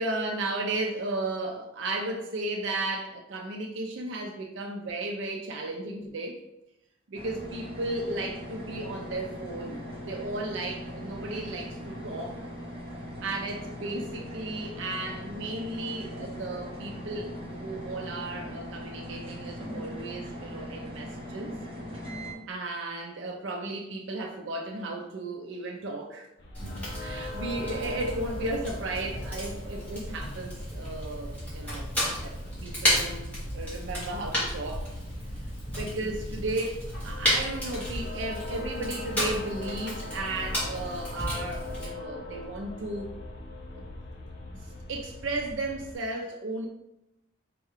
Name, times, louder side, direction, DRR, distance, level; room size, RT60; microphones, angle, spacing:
voice 1, 0.0-6.4 7.1-9.8 10.1-12.4 13.2-21.5 22.5-26.3 27.0-31.9 32.2-34.9 35.7-43.1 43.7-43.8 44.9-46.7, right 2 dB, 65° right, 1 dB, 0.4 m, -34 dB
sound 1, 7.1-22.3, equal, 30° right, 0.9 m, -40 dB
sound 2, 26.4-46.0, left 2 dB, 55° left, 0.5 m, -42 dB
Fire, 26.5-41.9, equal, 10° left, 1.2 m, -33 dB
4.3 x 2.2 x 3.5 m, 0.87 s
head